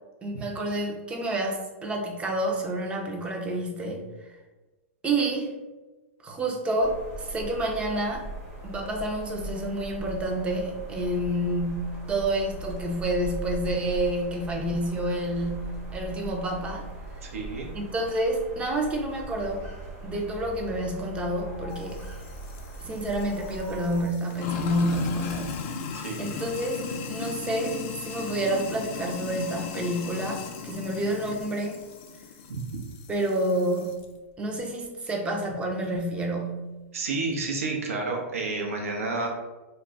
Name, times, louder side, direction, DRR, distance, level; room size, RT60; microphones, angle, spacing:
voice 1, 0.2-4.0 5.0-5.6 6.2-8.3 8.6-16.9 17.7-19.6 20.0-22.0 22.8-25.5 26.2-27.8 28.0-31.8 33.1-34.0 34.4-36.7, right 1 dB, 15° right, 1 dB, 0.5 m, -29 dB
sound 1, 6.8-24.0, right 2 dB, 35° right, 0.8 m, -40 dB
voice 2, 17.2-17.7 25.9-26.4 32.5-32.6 36.9-39.3, right 3 dB, 80° right, 1 dB, 0.7 m, -30 dB
Sink (filling or washing), 21.7-34.0, left 5 dB, 40° left, 0.4 m, -37 dB
2.3 x 2.0 x 3.5 m, 1.2 s
hypercardioid pair, 125°, 7 cm